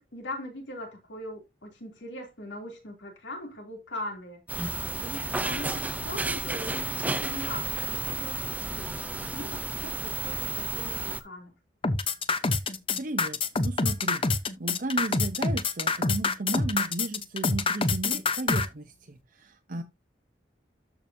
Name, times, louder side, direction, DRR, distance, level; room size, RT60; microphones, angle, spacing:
voice 1, 0.0-4.4 5.0-8.9 9.2-11.5 19.7-19.8, left 1 dB, 75° left, 2.9 m, -40 dB
sound 1, 4.5-11.2, right 2 dB, 10° right, 0.5 m, -32 dB
sound 2, 11.8-18.7, left 3 dB, 30° left, 0.7 m, -26 dB
voice 2, 13.0-14.2 14.6-19.8, right 2 dB, 45° right, 0.7 m, -34 dB
13.0 x 5.0 x 2.7 m
head